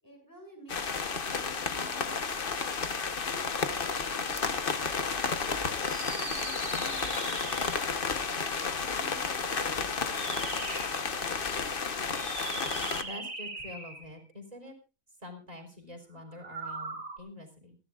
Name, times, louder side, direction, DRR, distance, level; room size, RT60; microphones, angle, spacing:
voice 1, 0.0-2.6 3.3-7.3, equal, 15° left, 1 dB, 7.2 m, -52 dB
sound 1, 0.7-13.0, left 5 dB, 45° left, 1.2 m, -32 dB
sound 2, 5.8-8.0 10.0-11.0 12.0-14.2 16.3-17.2, right 3 dB, 75° right, 2.6 m, -40 dB
voice 2, 13.0-14.8 15.2-17.8, left 1 dB, 30° right, 2 dB, 4.2 m, -46 dB
27.5 x 11.5 x 2.4 m, 0.32 s
omnidirectional pair, 1.4 m